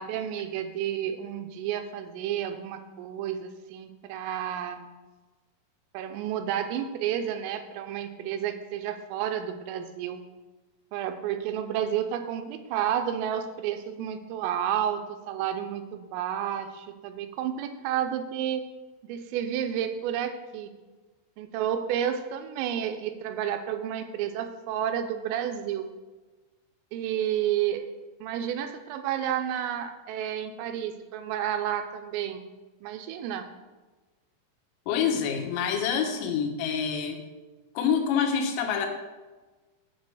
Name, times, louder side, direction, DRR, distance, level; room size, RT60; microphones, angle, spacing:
voice 1, 0.0-4.9 5.9-10.2 10.9-15.0 15.3-18.7 19.0-20.7 21.4-25.9 26.9-27.8 28.2-32.5 32.8-33.5, right 10 dB, 85° right, 7 dB, 3.2 m, -31 dB
voice 2, 34.9-37.2 37.8-38.9, left 7 dB, 85° left, 4 dB, 3.9 m, -26 dB
9.6 x 4.7 x 7.7 m, 1.2 s
omnidirectional pair, 5.9 m